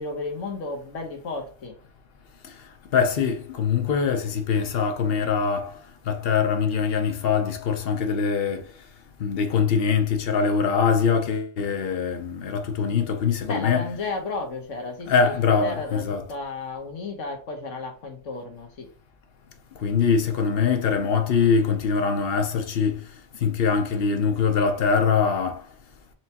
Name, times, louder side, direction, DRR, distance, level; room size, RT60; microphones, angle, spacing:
voice 1, 0.0-1.8 13.4-18.9, left 3 dB, 85° left, 1.4 m, -33 dB
voice 2, 2.9-5.8 6.1-8.7 9.2-13.8 15.1-16.2 19.8-23.0 23.4-25.6, left 6 dB, 60° left, 0.8 m, -23 dB
4.5 x 3.3 x 2.8 m
omnidirectional pair, 1.2 m